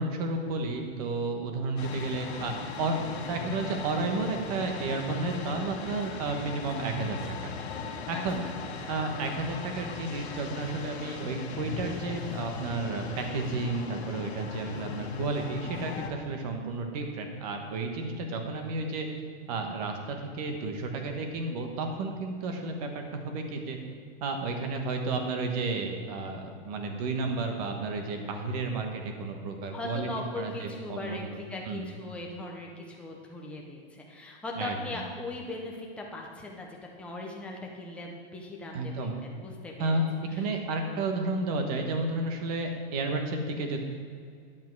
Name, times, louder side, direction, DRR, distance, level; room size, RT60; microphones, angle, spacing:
voice 1, 0.0-3.0 3.3-7.5 8.1-8.4 8.9-19.1 19.5-23.8 24.2-30.1 30.4-31.4 31.7-31.9 34.6-35.0 38.7-39.2 39.8-40.0 40.3-43.8, right 3 dB, 35° right, 4 dB, 1.2 m, -32 dB
sound 1, 1.8-16.1, left 5 dB, 80° left, 1.5 m, -39 dB
voice 2, 8.1-8.5 29.7-36.7 37.0-40.0, left 2 dB, 5° left, -1 dB, 0.7 m, -39 dB
10.5 x 8.4 x 4.7 m, 2.2 s
supercardioid pair, 170°, 32 cm